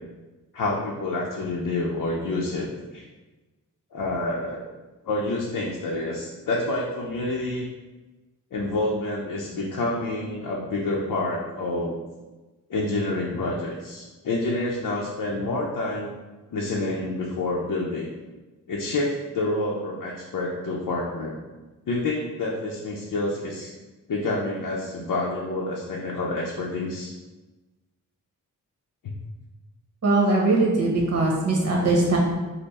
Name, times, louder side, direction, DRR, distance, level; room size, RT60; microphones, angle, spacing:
voice 1, 0.5-3.0 3.9-4.6 5.1-7.7 8.5-12.0 12.7-16.1 16.5-18.1 18.7-21.4 21.9-23.7 24.1-27.1 29.0-29.1, left 2 dB, 85° left, -3 dB, 0.7 m, -28 dB
voice 2, 30.0-32.2, right 2 dB, 50° right, -2 dB, 1.2 m, -21 dB
5.4 x 2.2 x 4.1 m, 1.2 s
wide cardioid pair, 125°, 32 cm